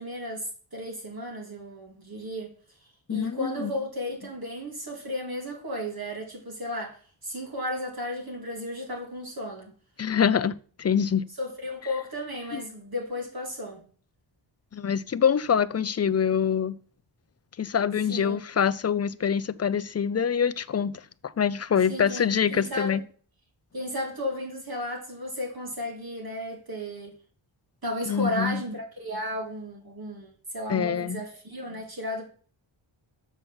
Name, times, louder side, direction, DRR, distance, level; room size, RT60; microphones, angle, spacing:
voice 1, 0.0-2.5 2.8-9.7 11.4-13.8 18.1-18.4 21.9-23.0 23.7-27.2 27.8-32.3, left 1 dB, 50° right, 2.1 m, -34 dB
voice 2, 3.1-3.7 10.0-11.2 12.5-12.6 14.7-16.7 17.6-20.9 21.2-23.0 28.1-28.6 30.7-31.2, left 7 dB, 35° left, 0.4 m, -25 dB
6.9 x 5.8 x 7.1 m
wide cardioid pair, 110°, 48 cm